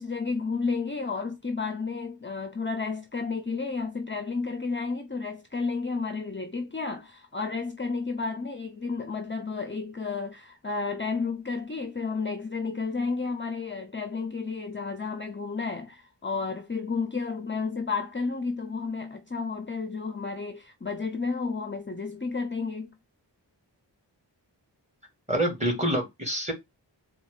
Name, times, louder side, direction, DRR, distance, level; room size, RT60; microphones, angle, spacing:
voice 1, 0.0-22.9, left 4 dB, 25° left, 0.6 m, -32 dB
voice 2, 25.3-26.5, right 1 dB, 15° right, 2.3 m, -26 dB
4.2 x 2.4 x 4.7 m
wide cardioid pair, 60°, 43 cm